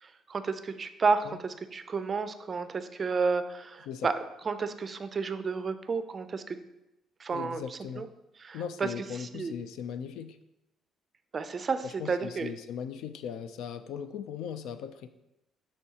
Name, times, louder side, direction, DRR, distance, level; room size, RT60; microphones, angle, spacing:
voice 1, 0.0-4.1 4.5-6.6 7.2-7.6 8.0-8.1 8.4-8.9 9.2-9.5 11.3-12.5, right 4 dB, 30° right, 10 dB, 0.4 m, -31 dB
voice 2, 7.3-8.1 8.5-10.4 11.8-15.1, left 8 dB, 85° left, 10 dB, 0.4 m, -38 dB
10.0 x 4.3 x 2.8 m, 0.91 s
cardioid pair, 145°, 0 cm